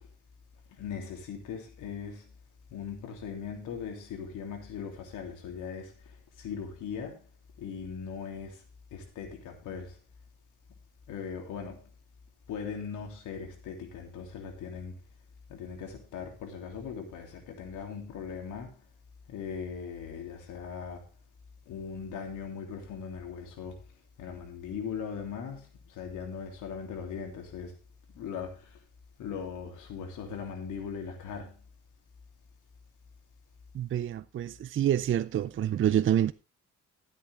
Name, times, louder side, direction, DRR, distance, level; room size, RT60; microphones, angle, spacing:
voice 1, 0.8-2.2 2.7-5.9 6.4-7.2 7.6-8.6 8.9-10.0 11.1-11.8 12.5-15.0 15.5-18.8 19.3-21.0 21.7-23.8 24.2-27.7 28.1-28.7 29.2-31.5, left 6 dB, 85° left, 3.2 m, -39 dB
voice 2, 33.7-36.3, right 10 dB, 45° right, 0.5 m, -27 dB
13.5 x 8.4 x 3.5 m
cardioid pair, 90°, 30 cm